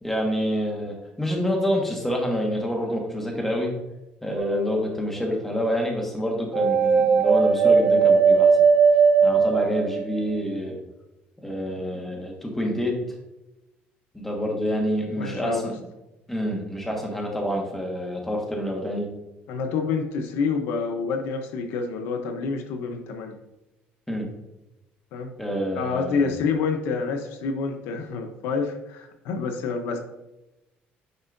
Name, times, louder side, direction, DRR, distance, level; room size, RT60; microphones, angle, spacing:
voice 1, 0.0-3.7 4.2-8.5 9.2-10.8 11.4-13.0 14.1-15.7 16.3-19.1 24.1-24.3 25.4-26.3, equal, 5° left, 0 dB, 1.5 m, -27 dB
sound 1, 4.4-5.1 6.5-10.4, right 5 dB, 35° right, 0.6 m, -18 dB
voice 2, 15.2-15.7 19.5-23.4 25.1-25.3 25.8-30.0, left 5 dB, 80° left, 6 dB, 0.8 m, -28 dB
9.4 x 5.2 x 2.6 m, 0.98 s
cardioid pair, 140°, 4 cm